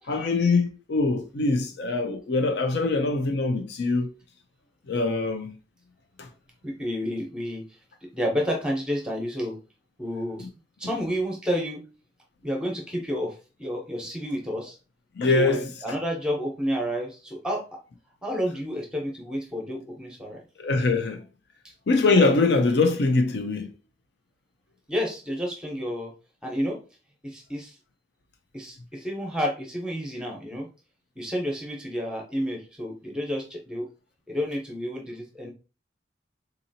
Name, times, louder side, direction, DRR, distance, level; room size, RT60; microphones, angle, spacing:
voice 1, 0.1-4.1 4.9-5.5 6.2-6.3 15.2-15.7 20.6-21.2 21.9-23.7, left 3 dB, 65° left, 0.5 m, -23 dB
voice 2, 6.6-7.8 8.1-9.6 10.0-10.5 10.8-11.8 12.4-14.8 15.3-17.8 18.2-20.4 24.9-26.1 26.4-26.8 27.2-27.8 28.5-30.7 31.2-33.9 34.3-35.5, equal, 5° right, 0.9 m, -30 dB
3.9 x 2.8 x 2.7 m
head